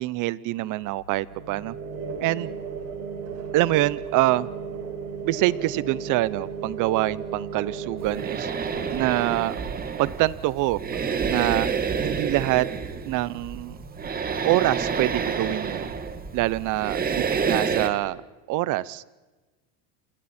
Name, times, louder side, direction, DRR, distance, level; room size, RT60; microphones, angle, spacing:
voice 1, 0.0-1.7 2.2-2.5 3.5-4.5 5.2-8.5 8.9-9.6 10.0-10.8 11.3-11.7 12.0-12.7 13.1-13.8 14.4-15.9 16.3-18.2 18.5-19.0, right 17 dB, 40° right, 20 dB, 0.8 m, -25 dB
sound 1, 0.8-17.5, right 5 dB, 60° right, 6.6 m, -37 dB
sound 2, 8.0-17.9, right 6 dB, 20° right, 1.4 m, -29 dB
29.0 x 28.0 x 4.3 m, 1.2 s
supercardioid pair, 145°, 46 cm